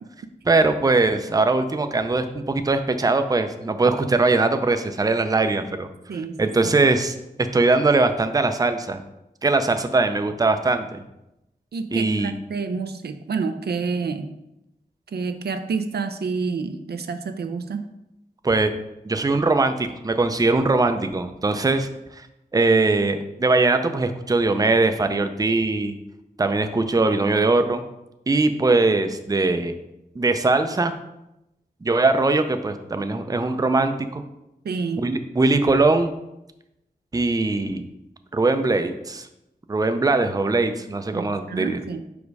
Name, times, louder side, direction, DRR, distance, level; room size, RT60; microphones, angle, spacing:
voice 1, 0.5-5.9 6.4-7.2 7.5-9.0 9.4-11.0 11.9-12.3 18.4-18.7 19.1-21.9 22.5-26.0 26.4-27.8 28.3-29.8 30.2-30.9 31.8-34.2 35.0-36.1 37.1-37.8 38.3-39.3 39.7-41.8, right 3 dB, 20° right, 8 dB, 0.5 m, -21 dB
voice 2, 6.1-6.8 11.7-14.3 15.1-17.9 34.6-35.1 41.1-42.0, right 4 dB, 80° right, 8 dB, 0.5 m, -29 dB
5.2 x 5.1 x 4.7 m, 0.88 s
wide cardioid pair, 110°, 16 cm